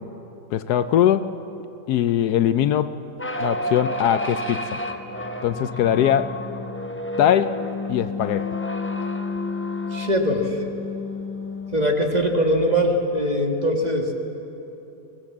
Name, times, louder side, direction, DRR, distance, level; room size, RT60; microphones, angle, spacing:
voice 1, 0.5-1.3 1.9-2.9 3.4-4.8 5.4-6.4 7.2-7.6 7.9-8.5, left 10 dB, 75° left, 12 dB, 1.2 m, -21 dB
sound 1, 3.2-11.9, left 2 dB, 15° left, 0.5 m, -30 dB
voice 2, 9.9-10.6 11.7-14.1, equal, 25° right, 1 dB, 1.9 m, -21 dB
23.5 x 18.0 x 7.3 m, 2.9 s
omnidirectional pair, 1.8 m